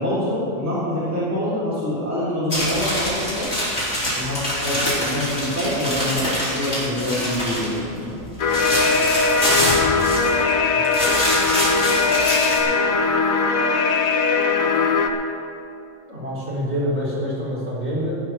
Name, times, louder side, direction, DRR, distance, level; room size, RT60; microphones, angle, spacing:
voice 1, 0.0-3.5 4.1-8.2, left 1 dB, 10° right, -9 dB, 3.3 m, -25 dB
sound 1, 2.5-7.8 8.1-10.5 10.8-12.6, equal, 50° left, 4.2 m, -25 dB
sound 2, 8.4-15.1, left 4 dB, 90° left, 1.3 m, -20 dB
voice 2, 16.1-18.1, equal, 50° right, -8 dB, 4.3 m, -26 dB
15.0 x 9.1 x 5.9 m, 2.5 s
omnidirectional pair, 1.4 m